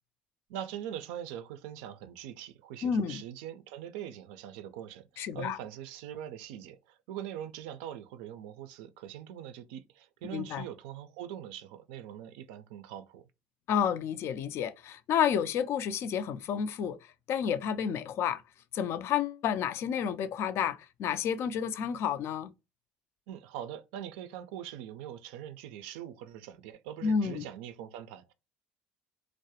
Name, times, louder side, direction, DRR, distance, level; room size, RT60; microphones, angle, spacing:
voice 1, 0.5-13.3 23.3-28.3, right 10 dB, 85° right, 0.3 m, -42 dB
voice 2, 2.8-3.2 5.2-5.6 10.3-10.6 13.7-17.0 17.3-18.4 18.7-22.5 27.0-27.5, left 8 dB, 55° left, 0.3 m, -30 dB
2.3 x 2.0 x 2.7 m
supercardioid pair, 80°, 5 cm